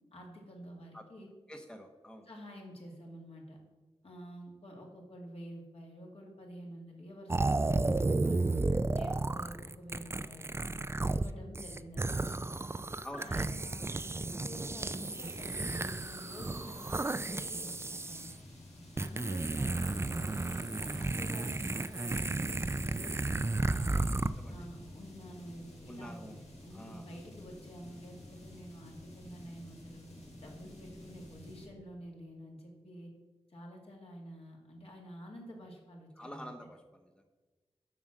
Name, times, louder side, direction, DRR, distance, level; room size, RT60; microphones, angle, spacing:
voice 1, 0.1-1.3 2.3-3.6 4.0-8.5 8.9-10.7 11.1-12.3 13.2-18.3 19.0-23.9 24.5-26.3 26.6-30.1 30.4-33.1 33.5-36.5, equal, 65° left, -1 dB, 2.0 m, -49 dB
voice 2, 1.5-2.3 13.0-13.4 24.4-24.7 25.9-26.4 26.7-27.1 36.2-37.3, equal, 10° left, 4 dB, 0.7 m, -47 dB
sound 1, 7.3-11.3 11.5-18.3 19.0-24.3, right 2 dB, 25° right, 0.3 m, -33 dB
sound 2, 14.7-31.7, left 1 dB, 90° left, 2.0 m, -52 dB
7.4 x 6.1 x 6.2 m, 1.3 s
wide cardioid pair, 70°, 11 cm